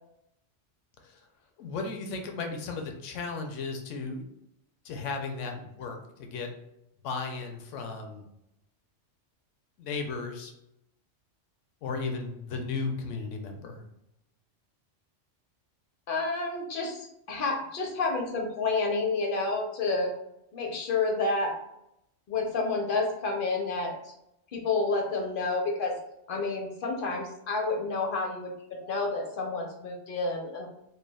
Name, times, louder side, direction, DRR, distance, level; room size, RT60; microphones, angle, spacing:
voice 1, 1.6-4.2 4.8-6.5 7.0-8.2 9.8-10.5 11.8-13.8, left 4 dB, 80° left, 4 dB, 0.9 m, -35 dB
voice 2, 16.1-20.1 20.5-21.6 22.3-24.1 24.5-26.0 26.3-30.7, left 3 dB, 60° left, 2 dB, 0.6 m, -29 dB
3.3 x 2.2 x 2.2 m, 0.82 s
omnidirectional pair, 1.3 m